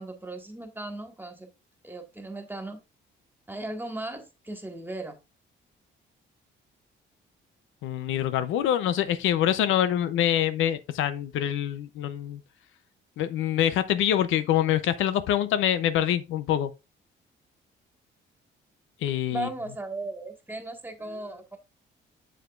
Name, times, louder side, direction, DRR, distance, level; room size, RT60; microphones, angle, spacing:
voice 1, 0.0-1.5 1.8-2.8 3.5-5.1 19.3-21.6, right 2 dB, 10° right, 1.8 m, -37 dB
voice 2, 7.8-12.4 13.2-16.7 19.0-19.5, left 11 dB, 85° left, 0.7 m, -25 dB
7.6 x 7.2 x 2.5 m
cardioid pair, 90°, 20 cm